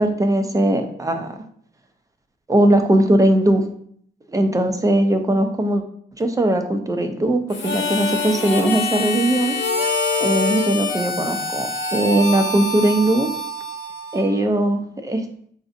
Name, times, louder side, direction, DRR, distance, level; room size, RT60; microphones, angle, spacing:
voice 1, 0.0-1.3 2.5-3.6 4.3-5.8 6.2-9.6 10.2-13.3 14.1-15.2, right 1 dB, 15° right, 6 dB, 0.5 m, -19 dB
Harmonica, 7.5-14.4, left 2 dB, 65° left, 0.8 m, -25 dB
4.0 x 2.6 x 2.5 m, 0.62 s
cardioid pair, 90°, 20 cm